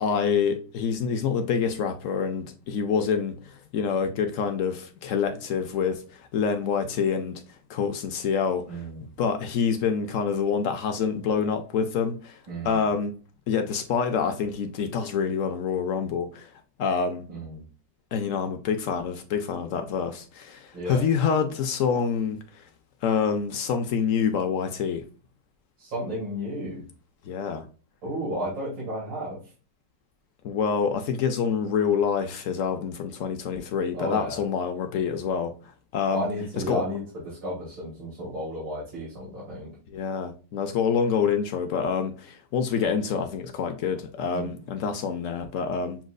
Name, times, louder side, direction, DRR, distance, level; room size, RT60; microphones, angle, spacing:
voice 1, 0.0-7.4 7.7-8.8 9.2-12.4 12.6-13.1 13.5-16.5 16.8-17.3 18.1-22.6 23.0-25.0 27.2-27.6 30.4-36.3 36.6-36.8 39.9-46.0, left 6 dB, 70° left, 0.8 m, -27 dB
voice 2, 8.7-9.1 12.5-12.8 17.3-17.6 20.7-21.0 25.8-26.8 28.0-29.4 33.9-34.4 36.1-37.0 37.4-39.7 44.3-44.5, equal, 80° right, 2.8 m, -33 dB
7.1 x 2.5 x 2.3 m
omnidirectional pair, 2.0 m